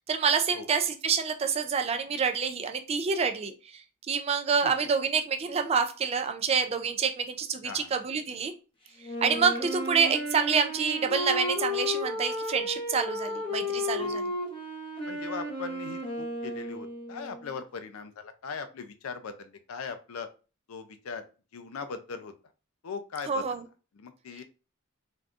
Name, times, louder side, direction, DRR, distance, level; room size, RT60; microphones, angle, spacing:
voice 1, 0.1-3.5 4.1-8.5 9.2-14.2 23.3-23.6, right 6 dB, 30° right, 7 dB, 0.3 m, -27 dB
Wind instrument woodwind instrument, 9.0-17.6, left 1 dB, 25° left, 0.9 m, -33 dB
voice 2, 15.1-20.3 20.7-21.2 21.5-22.3 22.8-23.5 23.9-24.4, left 5 dB, 80° left, 9 dB, 0.5 m, -39 dB
3.5 x 2.6 x 2.4 m, 0.34 s
head